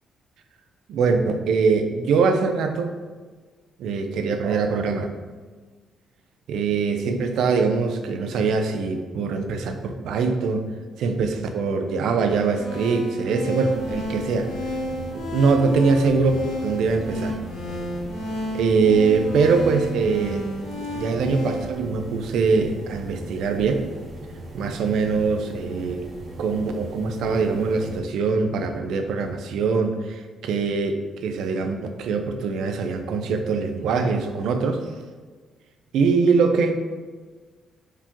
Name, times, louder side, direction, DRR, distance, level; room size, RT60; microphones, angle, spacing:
voice 1, 0.9-2.9 3.8-5.1 6.5-10.7 11.0-14.5 15.1-17.4 18.5-20.4 20.9-23.8 24.5-26.0 26.4-34.8 35.9-36.7, right 4 dB, 80° right, 6 dB, 0.5 m, -23 dB
sound 1, 12.3-21.6, left 1 dB, 90° left, 1.2 m, -32 dB
sound 2, 13.7-28.0, right 1 dB, 45° right, 0.9 m, -39 dB
4.7 x 3.5 x 2.9 m, 1.4 s
cardioid pair, 90°, 0 cm